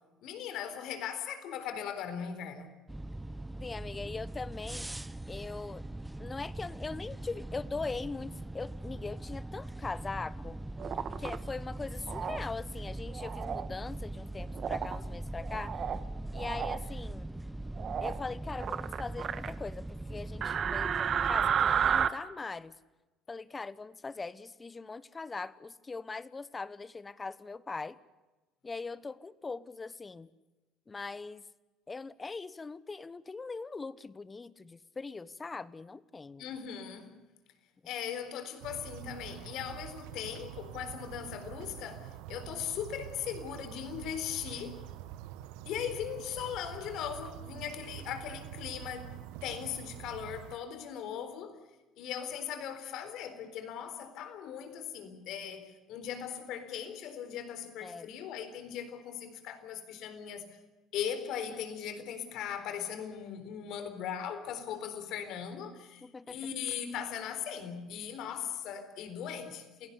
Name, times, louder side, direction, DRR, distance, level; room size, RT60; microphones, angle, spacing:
voice 1, 0.2-2.7 36.4-37.1 37.9-44.8 45.7-49.2 49.4-51.6 52.0-60.5 60.9-66.0 66.3-69.9, left 8 dB, 70° left, 9 dB, 3.9 m, -39 dB
sound 1, 2.9-22.1, right 1 dB, 10° right, 0.9 m, -41 dB
voice 2, 3.6-4.9 5.3-5.8 6.2-10.6 11.2-15.8 16.3-17.3 18.0-22.7 23.3-28.0 28.6-30.3 30.9-31.5 31.9-36.5 57.8-58.1 66.0-66.4, left 4 dB, 25° left, 17 dB, 1.1 m, -41 dB
sound 2, 10.8-11.4 12.1-12.4 13.1-13.7 14.6-15.0 15.4-16.0 16.3-16.8 17.8-18.2 18.6-19.5 20.4-22.1, right 8 dB, 50° right, 1.4 m, -31 dB
sound 3, 38.6-50.6, right 12 dB, 80° right, 1.1 m, -46 dB
28.0 x 17.0 x 8.3 m, 1.1 s
supercardioid pair, 80°, 0 cm